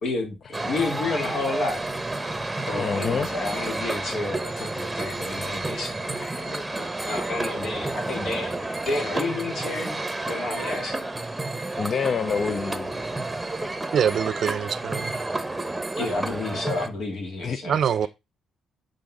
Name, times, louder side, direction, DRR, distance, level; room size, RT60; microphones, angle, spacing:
voice 1, 0.0-1.8 2.7-11.0 16.0-17.8, left 3 dB, 65° left, 2.6 m, -31 dB
sound 1, 0.5-16.9, right 2 dB, 10° right, 1.0 m, -30 dB
voice 2, 2.7-3.3 11.8-12.9 17.4-17.6, left 6 dB, 50° left, 0.5 m, -26 dB
voice 3, 13.9-15.2 17.6-18.1, right 8 dB, 60° right, 0.5 m, -24 dB
8.6 x 3.8 x 3.8 m
cardioid pair, 90°, 0 cm